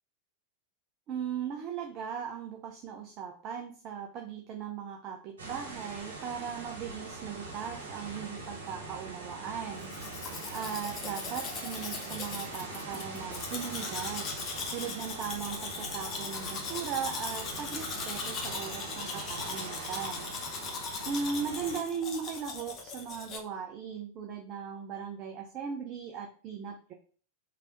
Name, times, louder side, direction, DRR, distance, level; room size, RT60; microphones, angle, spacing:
voice 1, 1.1-20.3 21.0-26.9, right 7 dB, 35° right, 2 dB, 0.6 m, -38 dB
sound 1, 5.4-21.8, right 3 dB, 65° right, 1.7 m, -42 dB
Domestic sounds home sounds, 9.8-23.4, left 5 dB, 30° left, 0.8 m, -39 dB
3.3 x 3.3 x 3.8 m, 0.42 s
figure-of-eight pair, 90°, 0 cm